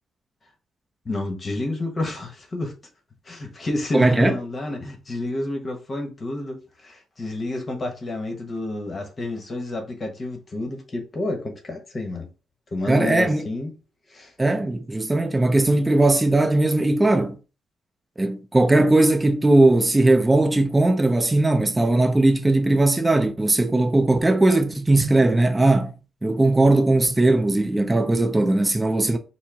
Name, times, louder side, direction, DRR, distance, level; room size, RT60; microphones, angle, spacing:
voice 1, 1.0-2.7 3.2-12.3 12.7-13.7 14.1-14.3, left 2 dB, 35° left, 1.0 m, -30 dB
voice 2, 3.9-4.3 12.9-13.4 14.4-17.4 18.2-25.9 26.2-29.2, right 2 dB, 15° right, 0.5 m, -19 dB
4.3 x 2.0 x 3.6 m
cardioid pair, 90°, 0 cm